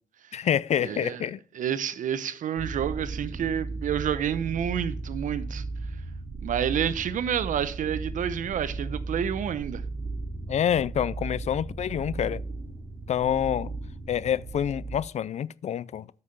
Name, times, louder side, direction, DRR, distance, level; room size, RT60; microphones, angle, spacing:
voice 1, 0.3-1.4 10.5-12.4 13.1-13.7 14.1-16.1, left 9 dB, 55° left, 0.4 m, -27 dB
voice 2, 0.8-1.2 1.5-5.6 6.4-9.8, right 9 dB, 70° right, 0.8 m, -29 dB
sound 1, 2.6-15.0, right 3 dB, 25° right, 3.9 m, -36 dB
8.3 x 5.6 x 6.5 m
cardioid pair, 100°, 14 cm